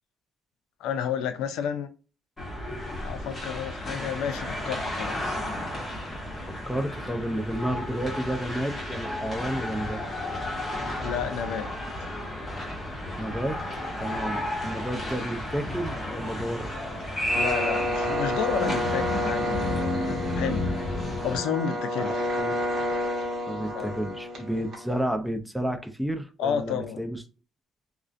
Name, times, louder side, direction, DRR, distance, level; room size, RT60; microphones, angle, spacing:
voice 1, 0.8-1.9 3.0-5.4 11.0-11.7 17.3-20.8 21.2-22.2 23.7-24.0 26.4-27.0, left 8 dB, 85° left, 0.3 m, -31 dB
sound 1, 2.4-21.4, left 1 dB, 25° left, 1.1 m, -32 dB
voice 2, 6.5-10.0 13.2-13.6 14.0-16.8 22.0-22.6 23.5-27.2, equal, ahead, 0.4 m, -31 dB
sound 2, 17.3-25.0, left 1 dB, 55° right, 0.8 m, -30 dB
2.4 x 2.1 x 2.4 m
cardioid pair, 110°, 0 cm